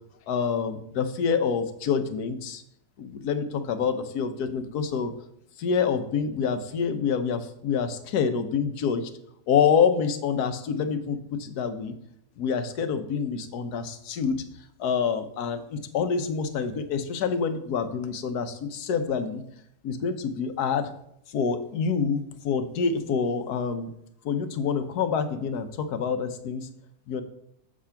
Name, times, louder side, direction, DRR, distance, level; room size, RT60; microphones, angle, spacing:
voice 1, 0.3-2.6 3.0-5.1 5.6-9.1 9.5-11.9 12.4-14.4 14.8-19.4 19.8-20.9 21.3-23.9 24.2-26.7 27.1-27.2, left 6 dB, 65° left, 9 dB, 1.2 m, -27 dB
7.4 x 5.0 x 5.7 m, 0.73 s
omnidirectional pair, 1.9 m